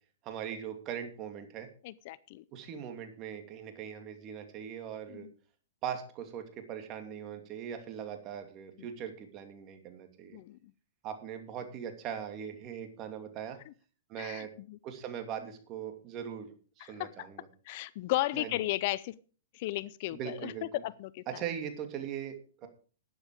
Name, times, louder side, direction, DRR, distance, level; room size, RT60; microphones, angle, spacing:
voice 1, 0.2-1.7 2.5-5.3 5.8-10.4 11.0-13.6 14.1-14.5 14.8-17.5 18.3-18.6 20.1-20.8 21.3-22.7, right 8 dB, 35° right, 6 dB, 2.7 m, -40 dB
voice 2, 1.8-2.4 5.1-5.3 10.3-10.6 14.2-14.8 16.8-17.3 17.7-19.1 19.5-20.5 20.8-21.2, left 17 dB, 50° left, 19 dB, 0.6 m, -35 dB
12.5 x 9.4 x 4.9 m, 0.38 s
hypercardioid pair, 135°, 0 cm